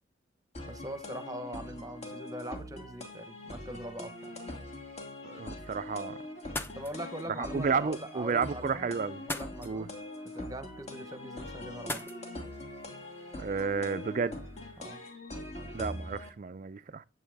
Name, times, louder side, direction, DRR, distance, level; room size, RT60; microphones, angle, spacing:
sound 1, 0.5-16.3, left 1 dB, 35° left, 2.5 m, -43 dB
voice 1, 0.7-4.4 6.7-8.9 9.3-9.9 10.3-12.1 14.8-15.0, equal, 20° right, 1.0 m, -42 dB
voice 2, 5.2-6.2 7.4-9.2 9.6-9.9 13.4-14.4 15.7-17.0, right 5 dB, 40° right, 0.4 m, -32 dB
sound 2, 6.4-14.8, left 1 dB, 10° left, 0.9 m, -45 dB
11.0 x 8.3 x 3.5 m
head